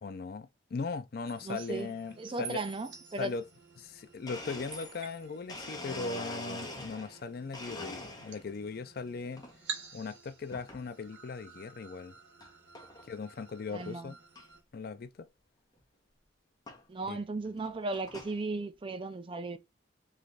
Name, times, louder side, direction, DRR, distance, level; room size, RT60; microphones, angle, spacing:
voice 1, 0.0-2.6 3.2-3.4 3.8-9.4 9.9-12.2 13.1-14.1 14.7-15.3 17.1-17.2, left 4 dB, 50° left, 0.4 m, -39 dB
sound 1, 1.3-14.6, right 6 dB, 70° right, 1.4 m, -50 dB
voice 2, 1.4-1.9 2.2-3.4 13.7-14.1 16.9-19.6, right 3 dB, 25° right, 0.4 m, -36 dB
Domestic sounds home sounds, 3.9-4.0 4.3-7.2 7.5-8.6 9.0-9.5 10.5-10.8 11.4-11.5 12.4-12.5 12.7-13.1 13.5-13.6 13.8-13.9 14.3-14.4 15.8-15.9 16.7-16.8 17.4-18.4, left 1 dB, 20° left, 1.1 m, -43 dB
3.3 x 3.3 x 3.8 m
head